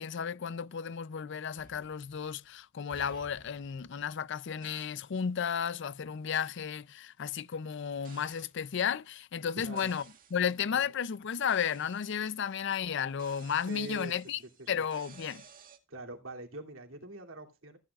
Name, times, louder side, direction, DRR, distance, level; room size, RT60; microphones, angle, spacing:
voice 1, 0.0-10.0 10.3-14.4 14.7-15.4, left 7 dB, 60° left, 0.5 m, -33 dB
sound 1, 1.6-2.5 2.9-4.2 4.6-5.1 6.3-6.6 8.0-8.6 9.8-10.5 11.5-12.6 13.2-15.8, right 5 dB, 45° right, 2.1 m, -56 dB
voice 2, 9.6-9.9 10.7-10.8 13.7-14.2 14.6-14.8 15.9-17.8, right 2 dB, 80° right, 2.8 m, -44 dB
15.0 x 10.5 x 2.4 m
head